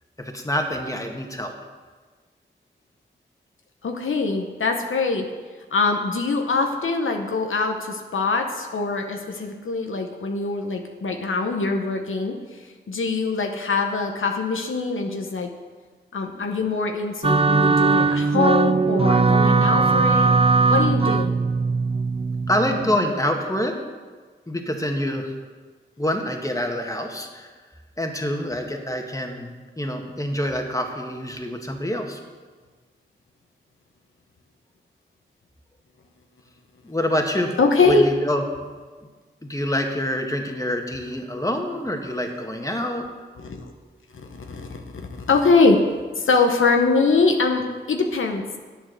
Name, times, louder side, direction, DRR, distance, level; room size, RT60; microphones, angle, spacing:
voice 1, 0.2-1.5 22.5-23.8 24.5-25.3 26.0-27.5 28.0-32.2 36.8-37.5 37.8-38.4 39.4-43.0, left 1 dB, 15° left, 3 dB, 1.7 m, -26 dB
voice 2, 3.8-5.3 5.7-15.5 16.1-20.3 20.7-21.3 37.6-38.0 43.4-43.7 44.1-45.8 46.2-48.4, left 4 dB, 80° left, 3 dB, 1.0 m, -23 dB
sound 1, 17.2-23.0, right 4 dB, 30° right, 0.5 m, -19 dB
8.9 x 7.7 x 6.5 m, 1.4 s
cardioid pair, 40°, 20 cm